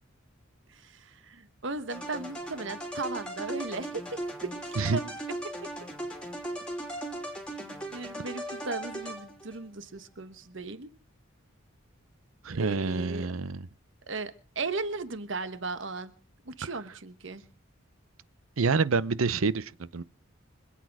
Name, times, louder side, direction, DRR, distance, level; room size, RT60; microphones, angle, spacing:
voice 1, 0.7-4.0 4.3-5.1 7.9-10.9 12.5-13.3 14.0-16.1 16.4-17.4, right 3 dB, 60° right, 1.2 m, -36 dB
sound 1, 1.9-9.6, right 1 dB, 5° left, 3.1 m, -38 dB
voice 2, 12.4-13.7 18.6-20.0, right 4 dB, 80° right, 0.7 m, -27 dB
25.0 x 8.6 x 4.8 m
head